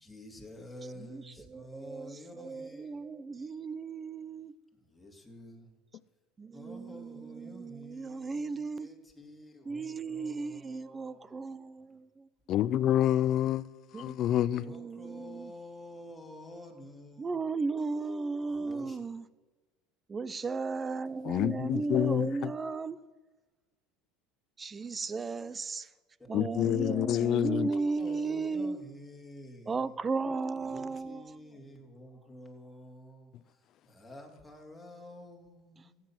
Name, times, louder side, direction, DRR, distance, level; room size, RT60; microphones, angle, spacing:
voice 1, 0.0-2.8 5.0-5.6 6.5-11.3 14.6-17.4 18.5-19.0 28.0-29.8 30.6-33.3 33.9-36.0, left 1 dB, 5° left, 3.0 m, -49 dB
voice 2, 1.5-4.5 6.4-8.9 9.6-12.3 13.9-14.2 14.4-15.5 17.2-19.2 20.1-23.0 24.6-25.9 26.3-28.8 29.7-31.4, right 4 dB, 25° right, 0.6 m, -35 dB
voice 3, 12.5-13.6 13.9-14.7 21.2-22.5 26.3-27.7, left 11 dB, 50° left, 0.5 m, -27 dB
14.5 x 9.1 x 7.5 m
supercardioid pair, 100°, 0 cm